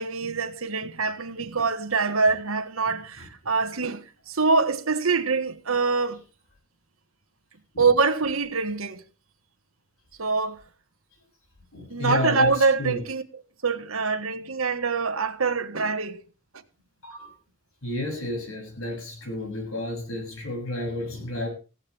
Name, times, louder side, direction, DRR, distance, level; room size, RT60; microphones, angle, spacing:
voice 1, 0.0-6.2 7.8-9.0 10.2-10.6 11.9-16.2, right 4 dB, 75° right, 1.6 m, -25 dB
voice 2, 11.7-13.0 17.0-17.3 17.8-21.5, left 1 dB, 75° left, 7.3 m, -31 dB
16.0 x 14.0 x 3.5 m
head